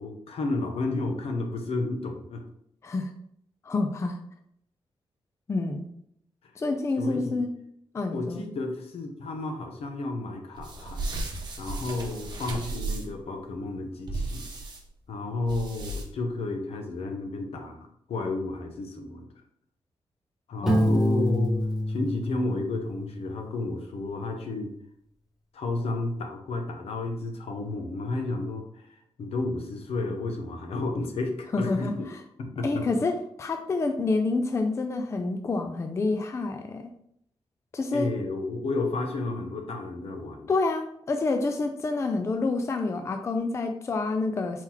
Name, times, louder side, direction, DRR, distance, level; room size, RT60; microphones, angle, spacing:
voice 1, 0.0-2.5 6.4-6.5 7.0-7.4 8.1-11.1 11.6-14.5 15.1-19.3 20.5-21.6 21.9-24.7 25.5-32.1 32.4-32.9 37.9-40.5, left 2 dB, 75° left, 4 dB, 0.8 m, -32 dB
voice 2, 3.6-4.2 5.5-5.9 6.6-7.6 7.9-8.4 20.6-21.0 31.5-32.2 32.6-36.9 37.7-38.2 40.5-44.6, left 3 dB, 30° left, 6 dB, 0.4 m, -28 dB
sound 1, 10.5-13.2 14.1-14.8 15.5-16.3, right 2 dB, 45° right, 0.9 m, -34 dB
Piano, 20.7-23.4, equal, 5° right, 1.1 m, -26 dB
4.4 x 2.9 x 3.8 m, 0.70 s
wide cardioid pair, 145°, 10 cm